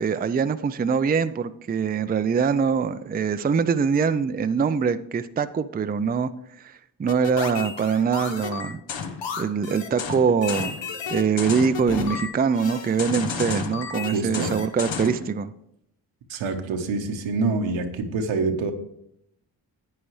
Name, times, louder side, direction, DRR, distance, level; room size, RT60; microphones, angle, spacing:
voice 1, 0.0-6.3 6.6-8.8 9.4-10.7 11.1-15.5, right 6 dB, 20° right, 11 dB, 0.5 m, -23 dB
sound 1, 7.1-15.2, left 6 dB, 65° left, 1.1 m, -32 dB
voice 2, 14.1-14.6 16.3-18.7, right 3 dB, 75° right, 6 dB, 1.2 m, -26 dB
10.0 x 8.6 x 3.2 m, 0.77 s
supercardioid pair, 45°, 46 cm